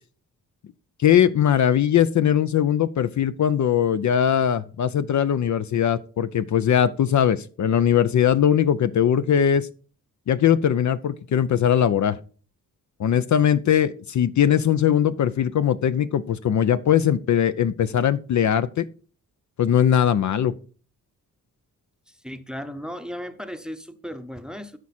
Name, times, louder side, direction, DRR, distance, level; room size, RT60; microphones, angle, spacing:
voice 1, 1.0-9.7 10.3-12.2 13.0-18.9 19.6-20.5, left 9 dB, 55° left, 0.5 m, -20 dB
voice 2, 22.1-24.8, equal, ahead, 0.7 m, -36 dB
12.5 x 4.8 x 4.2 m
cardioid pair, 95°, 35 cm